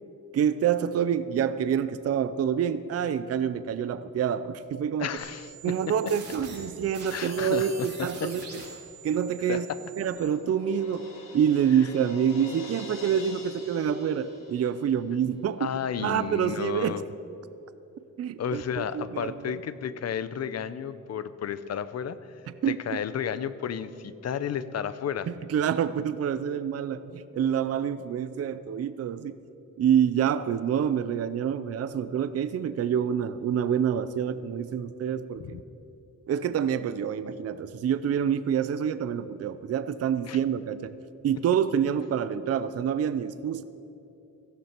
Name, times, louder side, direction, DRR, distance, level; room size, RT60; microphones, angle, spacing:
voice 1, 0.3-5.1 5.6-8.6 9.0-9.7 10.0-15.7 16.0-17.0 18.2-19.6 22.6-23.0 25.3-29.4 29.8-35.6 36.3-40.9 41.2-43.6, right 8 dB, 50° right, 13 dB, 0.5 m, -27 dB
voice 2, 5.0-5.8 7.1-8.3 9.5-9.8 15.6-17.0 18.4-22.2 22.7-25.3 35.4-35.6 40.3-40.4, left 8 dB, 50° left, 14 dB, 0.6 m, -32 dB
sound 1, 5.2-10.2, right 4 dB, 65° right, 4.0 m, -44 dB
Crash cymbal, 9.4-15.1, left 3 dB, 90° left, 2.4 m, -45 dB
17.0 x 15.0 x 4.4 m, 2.8 s
wide cardioid pair, 175°, 32 cm